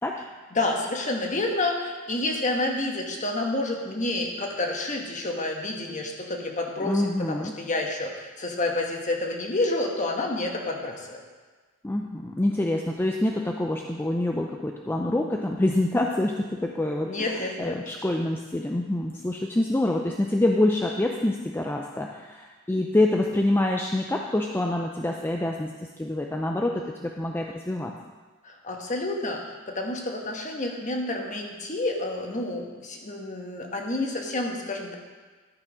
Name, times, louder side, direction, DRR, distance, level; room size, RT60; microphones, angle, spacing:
voice 1, 0.5-11.2 17.0-17.8 28.4-34.9, left 2 dB, 35° left, 1 dB, 1.3 m, -29 dB
voice 2, 6.8-7.5 11.8-25.7 26.0-27.9, left 1 dB, 10° left, 1 dB, 0.4 m, -26 dB
11.5 x 6.1 x 5.0 m, 1.4 s
head